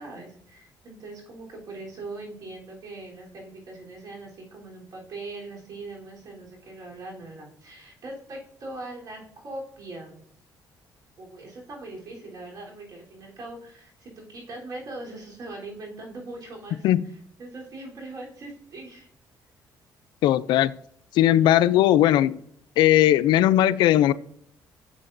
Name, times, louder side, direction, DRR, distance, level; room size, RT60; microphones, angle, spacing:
voice 1, 0.0-10.2 11.2-19.1, right 2 dB, 55° right, -2 dB, 3.5 m, -41 dB
voice 2, 20.2-20.7 21.1-22.3 22.8-24.1, left 13 dB, 80° left, 16 dB, 0.4 m, -18 dB
11.0 x 7.3 x 2.6 m, 0.66 s
cardioid pair, 100°, 8 cm